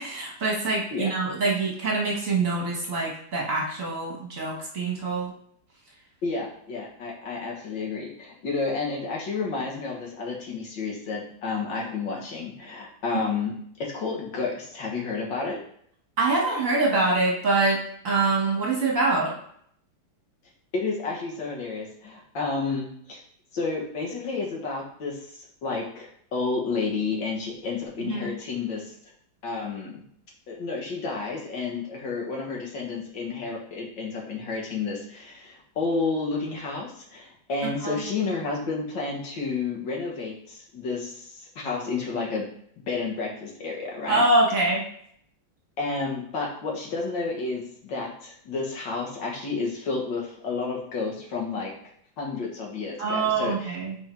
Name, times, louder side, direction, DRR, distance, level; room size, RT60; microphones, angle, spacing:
voice 1, 0.0-5.3 16.2-19.3 28.1-28.3 37.6-38.0 44.1-44.8 53.0-54.0, right 3 dB, 45° right, -3 dB, 1.6 m, -25 dB
voice 2, 6.2-13.5 13.8-15.6 20.7-23.2 23.5-28.9 29.4-30.0 30.5-42.4 42.9-44.2 45.8-51.7 52.2-53.8, left 4 dB, 70° left, -2 dB, 2.0 m, -31 dB
5.6 x 4.5 x 4.4 m, 0.66 s
omnidirectional pair, 2.1 m